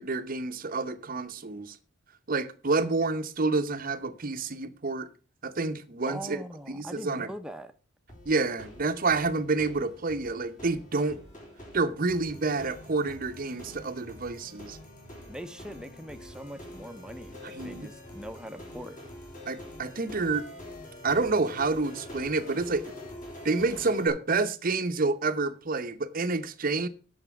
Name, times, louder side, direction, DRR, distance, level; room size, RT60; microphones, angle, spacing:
voice 1, 0.0-1.8 2.3-5.1 5.4-7.3 8.3-11.2 11.7-14.8 17.4-17.9 19.5-20.5 21.0-22.9 23.4-26.9, right 3 dB, 45° right, 0.8 m, -28 dB
voice 2, 6.0-7.7 15.3-19.0, equal, 5° right, 0.8 m, -41 dB
sound 1, 8.1-24.1, left 1 dB, 40° left, 3.8 m, -46 dB
9.0 x 6.7 x 5.9 m
head